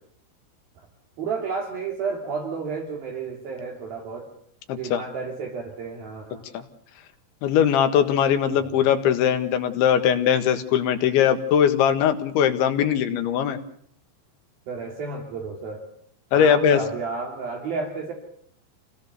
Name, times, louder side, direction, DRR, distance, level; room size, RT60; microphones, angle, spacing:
voice 1, 1.2-4.3 4.8-6.5 8.6-8.7 14.7-15.8 16.3-18.1, right 4 dB, 55° right, 2 dB, 4.2 m, -31 dB
voice 2, 4.7-5.0 6.5-6.6 7.4-13.6 16.3-16.8, left 9 dB, 75° left, 8 dB, 3.9 m, -20 dB
28.5 x 19.0 x 6.8 m, 0.65 s
omnidirectional pair, 5.4 m